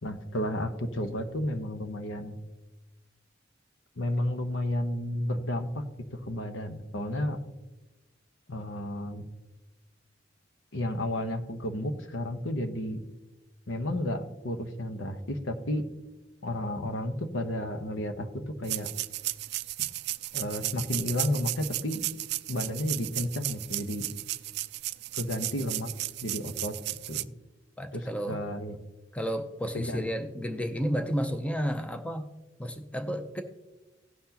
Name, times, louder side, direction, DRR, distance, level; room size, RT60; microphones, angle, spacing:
voice 1, 0.0-2.4 4.0-5.8 6.1-7.4 8.5-9.2 10.7-13.0 13.7-15.8 16.4-18.3 18.6-18.9 20.3-22.1 22.5-24.1 25.2-25.9 26.2-26.7 27.1-27.3 27.9-28.8 29.7-30.1, left 1 dB, 75° left, 7 dB, 1.0 m, -32 dB
sound 1, 18.6-27.2, right 17 dB, 60° right, 0.3 m, -34 dB
voice 2, 27.8-28.4 29.1-32.3 32.6-33.4, equal, 5° left, 6 dB, 0.6 m, -32 dB
17.5 x 5.9 x 2.9 m, 1.1 s
head